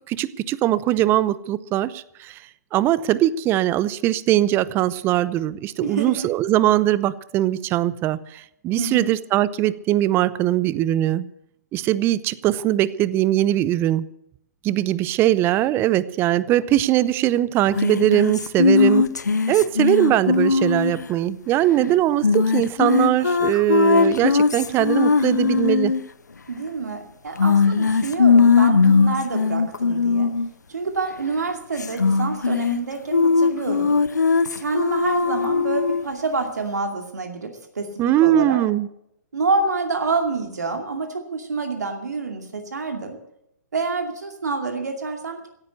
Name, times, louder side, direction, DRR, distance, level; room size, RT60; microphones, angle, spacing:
voice 1, 0.1-2.4 2.7-11.3 11.7-14.1 14.6-19.1 19.5-25.9 38.0-38.9, right 13 dB, 25° right, 0.6 m, -21 dB
voice 2, 5.8-6.3 8.8-9.1 21.8-22.0 26.5-30.3 30.7-33.9 34.6-37.9 38.2-38.6 39.3-43.2 43.7-45.5, right 3 dB, 80° right, 2.4 m, -27 dB
sound 1, 17.8-21.1 22.2-26.0 27.4-30.5 31.8-32.8 33.1-36.0, left 4 dB, 85° left, 0.9 m, -19 dB
16.5 x 9.5 x 8.3 m
figure-of-eight pair, 125°, 9 cm